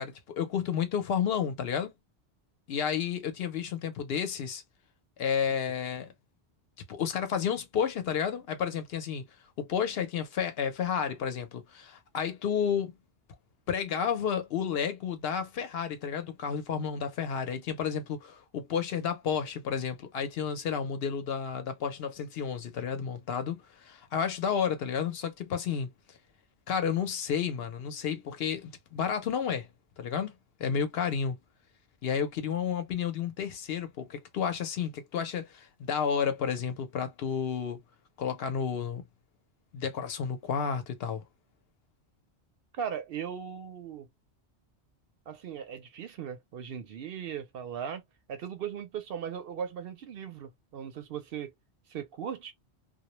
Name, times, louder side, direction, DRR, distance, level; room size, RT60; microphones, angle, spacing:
voice 1, 0.0-1.9 2.7-4.6 5.2-6.1 6.9-9.2 9.6-12.9 13.7-25.9 26.7-29.7 30.0-30.3 30.6-31.4 32.0-37.8 38.2-39.0 39.7-41.2, left 7 dB, 65° left, 0.8 m, -31 dB
voice 2, 42.7-44.1 45.3-48.0 48.3-51.5 51.9-52.5, right 8 dB, 65° right, 0.7 m, -38 dB
2.2 x 2.1 x 2.9 m
omnidirectional pair, 1.1 m